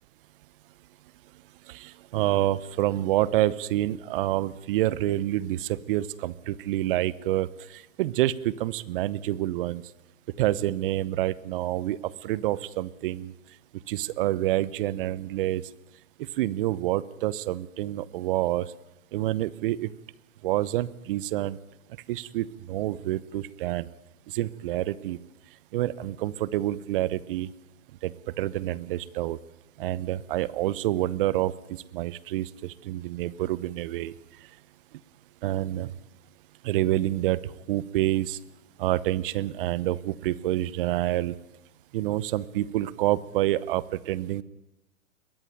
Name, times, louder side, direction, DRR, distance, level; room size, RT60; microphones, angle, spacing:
voice 1, 1.7-9.8 10.4-13.3 13.9-15.6 16.2-18.7 19.1-19.9 20.4-21.6 22.1-23.9 24.3-25.2 25.7-27.5 28.0-29.4 29.8-31.5 31.9-34.1 35.4-35.9 36.6-38.4 38.8-41.3 41.9-44.4, right 15 dB, 40° right, 20 dB, 0.9 m, -27 dB
22.0 x 17.0 x 9.1 m, 0.99 s
hypercardioid pair, 130°, 42 cm